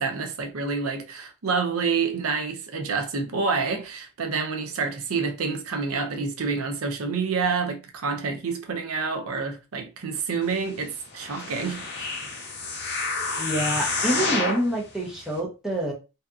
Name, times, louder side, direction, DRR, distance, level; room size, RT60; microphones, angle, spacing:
voice 1, 0.0-12.1, right 5 dB, 85° right, 0.5 m, -28 dB
sound 1, 11.1-14.7 15.3-15.4, left 3 dB, 50° left, 0.6 m, -29 dB
voice 2, 13.4-15.9, right 1 dB, 5° right, 0.6 m, -27 dB
2.7 x 2.4 x 2.3 m
head